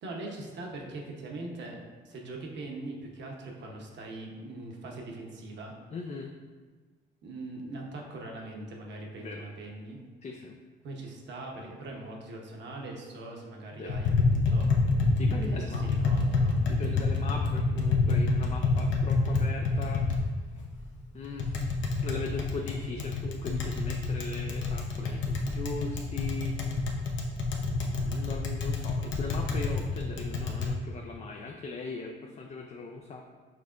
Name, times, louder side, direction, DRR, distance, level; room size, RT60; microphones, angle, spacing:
voice 1, 0.0-1.8 2.0-5.7 7.2-10.0 10.8-14.8 15.2-17.0, right 2 dB, 65° right, 0 dB, 0.9 m, -41 dB
voice 2, 5.9-6.3 9.2-9.4 10.2-10.6 13.8-14.0 15.1-15.9 16.7-20.0 21.1-21.6 22.0-26.5 27.6-33.2, left 4 dB, 35° left, 1 dB, 0.4 m, -39 dB
Tap, 13.9-30.7, left 3 dB, 70° left, 0.8 m, -28 dB
6.2 x 3.4 x 2.5 m, 1.4 s
cardioid pair, 90°, 20 cm